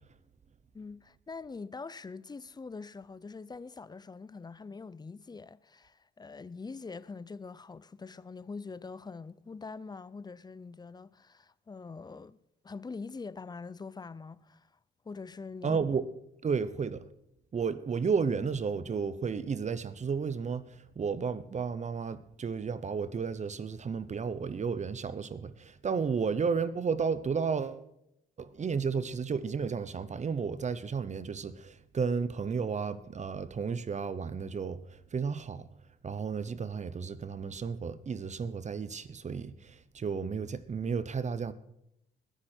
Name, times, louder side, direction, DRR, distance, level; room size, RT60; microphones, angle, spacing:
voice 1, 0.7-12.4 12.6-14.8 15.0-15.8, left 4 dB, 20° left, 0.5 m, -44 dB
voice 2, 15.6-16.1 16.4-17.0 17.5-27.8 28.4-35.7 36.0-41.5, right 5 dB, 35° right, 0.8 m, -33 dB
20.5 x 9.9 x 4.5 m
cardioid pair, 90°, 20 cm